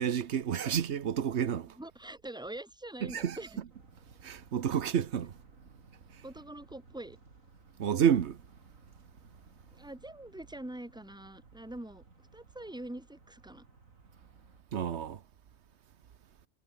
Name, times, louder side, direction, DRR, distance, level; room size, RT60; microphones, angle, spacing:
voice 1, 0.0-1.7 3.0-3.4 4.2-5.3 7.8-8.4 14.7-15.2, right 8 dB, 60° right, 1.2 m, -29 dB
voice 2, 1.6-3.6 6.2-7.2 9.7-12.0 12.3-13.6, right 1 dB, 5° right, 1.3 m, -44 dB
sound 1, 3.7-14.6, right 3 dB, 90° right, 4.4 m, -60 dB
omnidirectional pair, 1.3 m